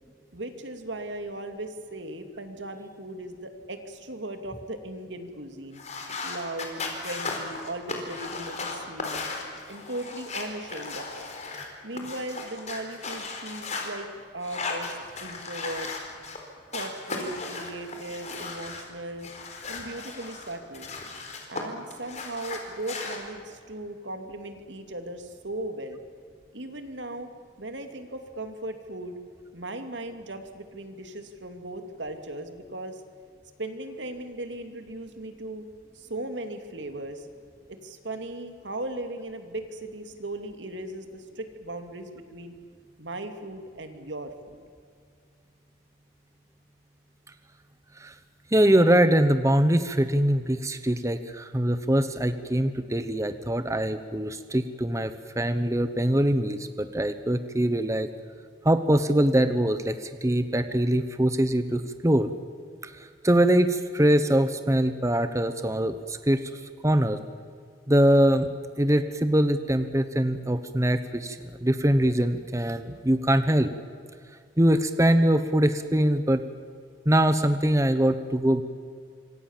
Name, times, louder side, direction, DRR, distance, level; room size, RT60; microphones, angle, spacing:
voice 1, 0.3-5.8 6.2-9.3 9.7-11.3 11.8-14.1 14.3-15.9 16.7-19.3 19.7-20.9 21.5-26.0 26.5-27.3 27.6-29.2 29.5-33.0 33.6-35.6 35.9-37.3 37.7-42.5 43.0-44.6, right 1 dB, 80° right, 7 dB, 2.7 m, -37 dB
sound 1, 5.7-13.9 14.4-16.4 16.7-18.8 19.2-21.6 21.9-23.2, left 4 dB, 40° left, 4.5 m, -36 dB
voice 2, 48.5-58.1 58.6-62.3 62.8-66.5 66.8-67.2 67.9-68.5 68.8-73.7 74.6-76.4 77.0-78.6, right 1 dB, 15° right, 10 dB, 1.0 m, -23 dB
26.5 x 25.0 x 7.4 m, 2.2 s
head